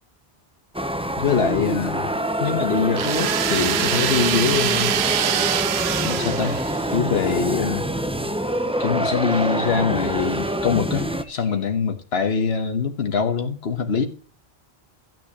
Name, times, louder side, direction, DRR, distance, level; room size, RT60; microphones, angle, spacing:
sound 1, 0.7-11.2, equal, 5° right, 0.7 m, -26 dB
voice 1, 1.2-2.1 2.4-5.0 6.0-6.6 6.9-7.9 8.8-14.0, left 6 dB, 80° left, 1.4 m, -23 dB
sound 2, 2.9-7.1, right 9 dB, 85° right, 0.9 m, -24 dB
sound 3, 4.6-7.7 10.7-11.7, left 1 dB, 60° left, 2.5 m, -49 dB
14.0 x 9.2 x 2.9 m
omnidirectional pair, 1.0 m